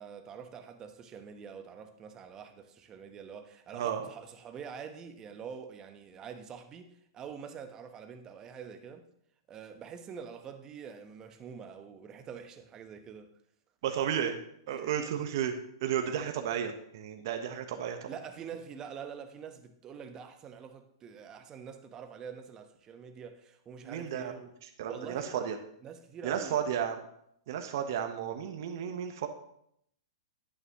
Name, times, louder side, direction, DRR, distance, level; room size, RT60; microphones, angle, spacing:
voice 1, 0.0-9.1 9.5-13.3 14.0-14.2 14.7-15.1 18.1-24.5 24.9-25.4 25.8-26.6, right 7 dB, 25° right, 1.1 m, -46 dB
voice 2, 3.7-4.1 13.8-14.4 14.7-15.5 15.8-18.1 23.8-24.3 24.6-25.6 26.2-27.0 27.5-29.3, right 9 dB, 60° right, 1.1 m, -33 dB
11.0 x 9.0 x 3.0 m
hypercardioid pair, 115°, 2 cm